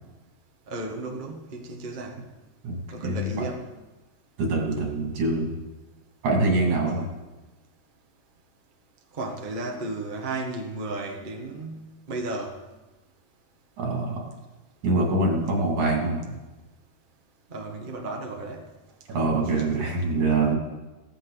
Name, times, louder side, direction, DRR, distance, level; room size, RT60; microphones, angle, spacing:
voice 1, 0.7-2.2 2.9-3.6 9.1-12.6 17.5-18.6 19.6-19.7, right 2 dB, 25° right, 1 dB, 1.0 m, -34 dB
voice 2, 2.6-3.5 4.4-5.6 6.2-7.1 13.8-14.2 14.8-16.4 19.1-20.6, right 2 dB, 85° right, -1 dB, 4.2 m, -24 dB
16.5 x 14.5 x 4.1 m, 1.1 s
omnidirectional pair, 3.3 m